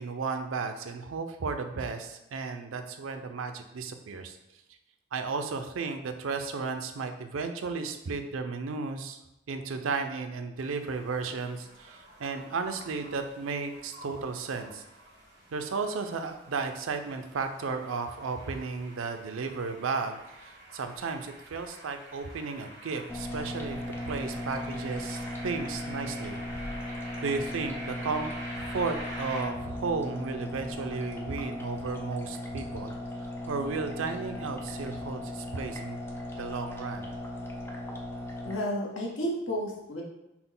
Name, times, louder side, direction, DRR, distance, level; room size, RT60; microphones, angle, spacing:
voice 1, 0.0-4.4 5.1-9.2 9.5-14.8 15.5-23.8 24.1-26.4 27.2-28.3 28.6-32.9 33.5-36.0 36.4-37.1, right 4 dB, 90° right, 7 dB, 0.5 m, -34 dB
sound 1, 10.6-29.4, right 1 dB, 65° right, 1.3 m, -47 dB
sound 2, 23.1-38.6, left 1 dB, 10° left, 0.4 m, -37 dB
voice 2, 38.4-40.0, equal, 75° left, -2 dB, 1.0 m, -32 dB
5.8 x 2.1 x 3.8 m, 0.92 s
head